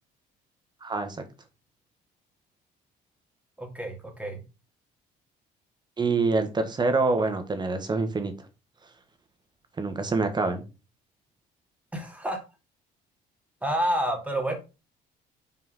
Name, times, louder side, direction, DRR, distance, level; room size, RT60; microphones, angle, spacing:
voice 1, 0.8-1.2 6.0-8.3 9.8-10.6, right 3 dB, 25° right, 8 dB, 1.6 m, -26 dB
voice 2, 3.6-4.4 11.9-12.4 13.6-14.6, right 1 dB, 10° right, 3 dB, 2.6 m, -29 dB
5.8 x 4.6 x 5.7 m, 0.30 s
cardioid pair, 110°, 17 cm